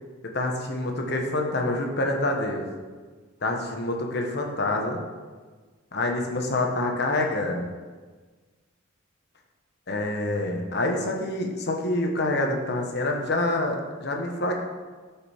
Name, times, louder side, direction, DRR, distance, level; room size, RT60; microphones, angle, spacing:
voice 1, 0.3-2.7 3.4-5.0 5.9-7.7 9.9-14.6, left 2 dB, 50° left, 2 dB, 1.2 m, -26 dB
11.5 x 5.2 x 4.5 m, 1.4 s
head